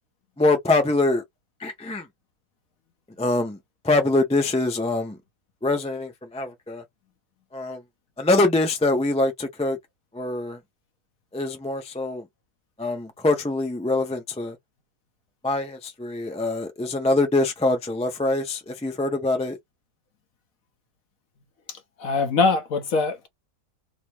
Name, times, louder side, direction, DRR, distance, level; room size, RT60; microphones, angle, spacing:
voice 1, 0.4-1.2 1.6-2.1 3.2-3.6 3.8-5.2 5.6-6.8 7.5-7.8 8.2-9.8 10.1-10.6 11.3-12.2 12.8-14.6 15.4-19.6, left 2 dB, 10° left, 0.3 m, -24 dB
voice 2, 21.7-23.3, left 4 dB, 65° left, 1.3 m, -23 dB
3.8 x 2.1 x 3.0 m
omnidirectional pair, 1.6 m